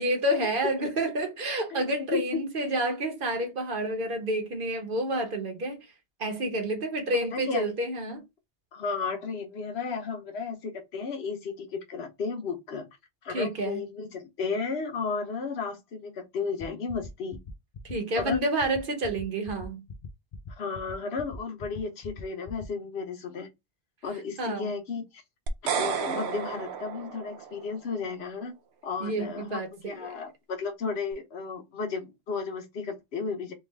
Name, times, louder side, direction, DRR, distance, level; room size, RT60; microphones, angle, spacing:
voice 1, 0.0-5.9 6.2-8.2 13.3-13.8 17.8-19.8 24.4-24.7 29.0-30.2, right 1 dB, 60° right, 1.1 m, -29 dB
voice 2, 7.3-7.7 8.7-12.9 13.2-17.4 18.2-18.4 20.5-23.5 24.0-25.2 25.7-28.5 28.8-33.5, left 5 dB, 90° left, 1.1 m, -33 dB
sound 1, 16.6-22.7, left 6 dB, 45° left, 0.6 m, -42 dB
sound 2, 25.5-27.8, right 7 dB, 85° right, 0.9 m, -32 dB
3.5 x 2.4 x 3.2 m
omnidirectional pair, 1.0 m